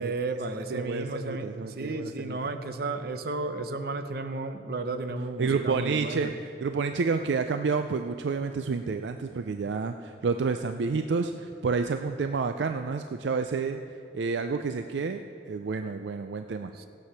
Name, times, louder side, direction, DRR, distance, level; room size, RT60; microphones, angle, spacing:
voice 1, 0.0-6.3 16.7-16.9, right 3 dB, 60° right, 7 dB, 0.8 m, -33 dB
voice 2, 0.7-2.4 5.4-6.3 6.6-13.8 14.1-16.7, right 4 dB, 80° right, 7 dB, 0.4 m, -29 dB
16.5 x 7.8 x 5.7 m, 2.5 s
head